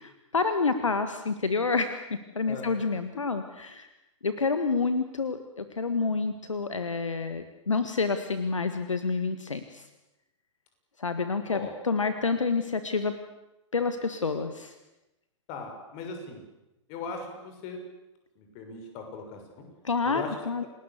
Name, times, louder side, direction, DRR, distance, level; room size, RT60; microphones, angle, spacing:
voice 1, 0.3-3.9 4.2-9.9 11.0-13.1 13.7-14.7 19.8-20.6, left 4 dB, 75° left, 9 dB, 1.6 m, -28 dB
voice 2, 15.5-16.4 16.9-17.8 18.3-19.6 20.0-20.3, left 4 dB, 35° left, 4 dB, 6.6 m, -39 dB
28.5 x 19.5 x 8.4 m, 0.96 s
figure-of-eight pair, 105°, 16 cm